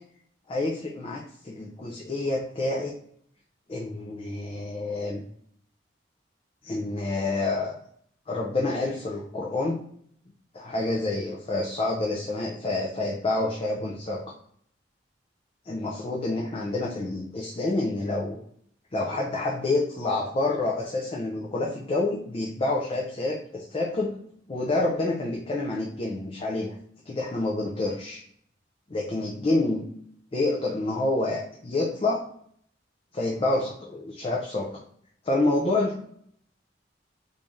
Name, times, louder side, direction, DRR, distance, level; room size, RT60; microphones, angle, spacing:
voice 1, 0.5-2.9 3.7-5.2 6.6-7.8 8.3-9.8 10.5-14.3 15.6-18.4 18.9-24.1 24.5-26.8 27.1-28.2 28.9-29.8 30.3-32.2 33.1-34.8 35.2-36.0, left 2 dB, 30° left, -2 dB, 0.5 m, -28 dB
3.1 x 2.7 x 3.5 m, 0.64 s
head